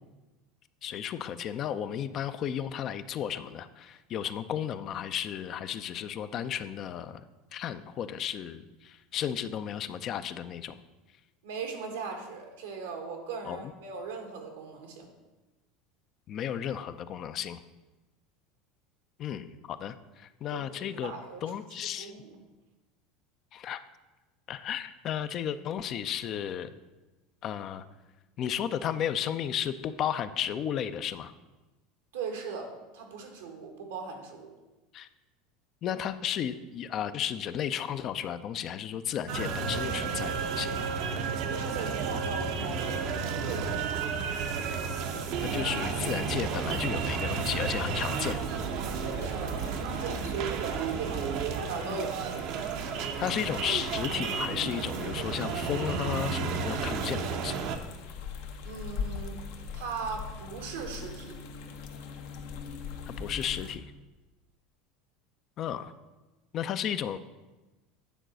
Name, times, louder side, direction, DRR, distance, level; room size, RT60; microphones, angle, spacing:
voice 1, 0.8-7.2 7.5-10.8 13.5-13.7 16.3-17.6 19.2-21.1 21.4-22.1 23.5-23.8 24.5-26.7 27.4-27.8 28.4-31.3 34.9-35.1 35.8-40.8 45.4-48.4 53.2-57.6 63.1-63.8 65.6-65.9 66.5-67.2, left 9 dB, 45° left, 12 dB, 0.5 m, -33 dB
voice 2, 11.4-15.1 20.5-20.7 21.0-22.4 32.1-34.5 41.2-43.7 49.0-52.2 58.6-59.4 59.7-61.4, right 5 dB, 90° right, 2 dB, 1.6 m, -39 dB
sound 1, 39.3-57.8, right 5 dB, 65° right, 0.8 m, -32 dB
sound 2, 45.0-63.8, left 5 dB, 75° left, 0.9 m, -43 dB
9.1 x 4.0 x 6.2 m, 1.1 s
supercardioid pair, 100°, 0 cm